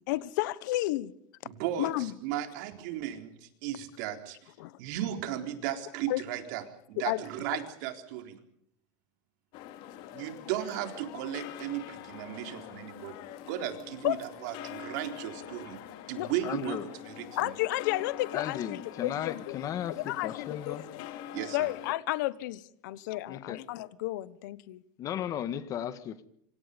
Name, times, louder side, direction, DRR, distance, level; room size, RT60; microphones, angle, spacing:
voice 1, 0.1-1.1 1.8-2.1 4.6-4.8 6.1-6.2 7.0-7.2 14.0-14.2 16.2-16.3 17.4-19.6 19.9-20.8 21.5-24.8, left 17 dB, 75° left, 1.2 m, -32 dB
voice 2, 1.4-1.9 2.2-4.5 4.8-8.4 10.1-16.8 17.1-17.5 21.3-21.7, right 12 dB, 65° right, 3.9 m, -36 dB
sound 1, 9.5-22.0, left 11 dB, 50° left, 2.7 m, -44 dB
voice 3, 16.4-16.9 18.3-20.9 23.3-23.6 25.0-26.3, left 10 dB, 35° left, 1.7 m, -35 dB
26.0 x 26.0 x 5.3 m
supercardioid pair, 155°, 10 cm